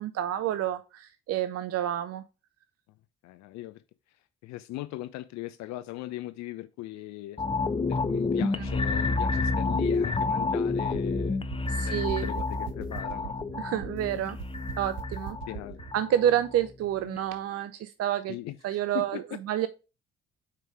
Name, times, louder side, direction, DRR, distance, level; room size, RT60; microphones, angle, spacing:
voice 1, 0.0-2.2 8.4-8.7 11.7-12.3 13.5-14.4 14.8-15.4 15.9-18.3 18.6-19.2 19.5-19.7, right 11 dB, 55° right, 0.5 m, -29 dB
voice 2, 3.2-3.8 4.4-7.4 7.9-13.4 15.5-15.8 18.3-19.4, left 16 dB, 65° left, 0.5 m, -39 dB
sound 1, 7.4-16.7 17.1-17.2, left 3 dB, 20° left, 0.6 m, -29 dB
sound 2, 10.9-16.0, right 12 dB, 75° right, 0.8 m, -42 dB
4.8 x 4.5 x 4.7 m
hypercardioid pair, 50°, 29 cm